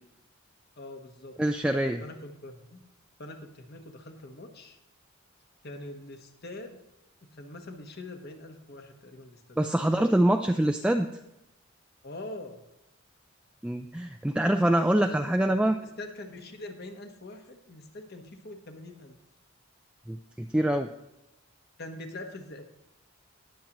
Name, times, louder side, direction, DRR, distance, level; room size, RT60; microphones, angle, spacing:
voice 1, 0.8-1.4 2.0-2.8 3.2-4.8 5.6-6.8 7.3-9.6 12.0-12.6 15.0-15.4 15.8-19.2 21.8-22.6, left 2 dB, 50° left, 5 dB, 1.2 m, -43 dB
voice 2, 1.4-2.0 9.6-11.1 13.6-15.8 20.1-20.9, right 1 dB, 5° right, 5 dB, 0.3 m, -25 dB
19.5 x 7.4 x 3.0 m, 0.88 s
head